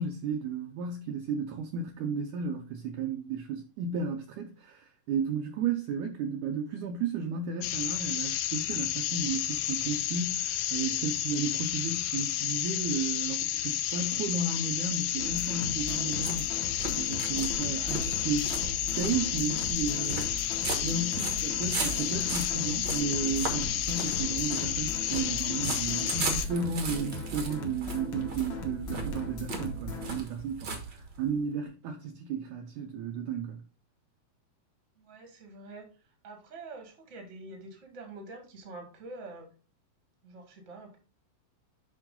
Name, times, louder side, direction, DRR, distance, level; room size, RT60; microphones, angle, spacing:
voice 1, 0.0-16.5 17.0-18.6 19.0-33.6, right 5 dB, 75° right, 1.9 m, -33 dB
sound 1, 7.6-26.5, left 12 dB, 85° left, 2.3 m, -31 dB
sound 2, 14.9-31.4, right 4 dB, 50° right, 1.3 m, -38 dB
sound 3, 15.2-30.2, left 3 dB, 55° left, 1.4 m, -39 dB
voice 2, 35.0-39.5 40.2-41.0, right 2 dB, 30° right, 1.4 m, -46 dB
7.5 x 5.6 x 3.7 m
omnidirectional pair, 4.2 m